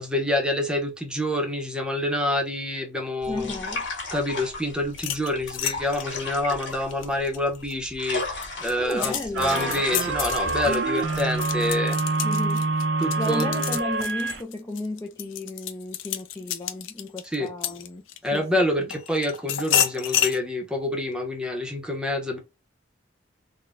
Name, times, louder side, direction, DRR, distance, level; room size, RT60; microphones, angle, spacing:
voice 1, 0.0-3.5 4.1-12.0 13.0-13.5 17.2-17.5 18.2-22.4, left 1 dB, 5° right, 0.8 m, -27 dB
sound 1, 3.2-11.7, left 3 dB, 70° left, 1.6 m, -35 dB
voice 2, 3.3-3.9 8.8-9.8 12.2-12.7 13.2-18.0 18.3-18.5 18.8-18.9, left 2 dB, 15° left, 0.4 m, -33 dB
sound 2, 4.9-7.7 8.2-18.4 18.9-20.4, left 10 dB, 90° left, 0.5 m, -30 dB
sound 3, 9.3-14.4, right 3 dB, 65° right, 0.5 m, -26 dB
3.9 x 2.2 x 2.5 m
head